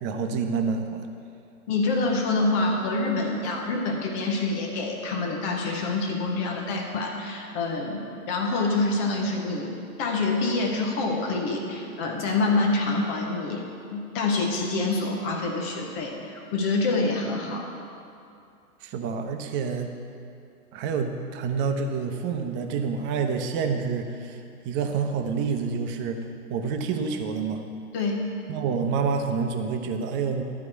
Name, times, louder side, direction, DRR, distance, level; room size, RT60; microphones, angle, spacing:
voice 1, 0.0-1.1 18.8-19.9 20.7-26.2 26.5-27.6 28.5-30.4, right 5 dB, 25° right, 5 dB, 0.8 m, -28 dB
voice 2, 1.7-17.7 27.9-28.3, left 3 dB, 10° left, 1 dB, 0.3 m, -26 dB
12.5 x 4.8 x 8.4 m, 2.6 s
hypercardioid pair, 125°, 44 cm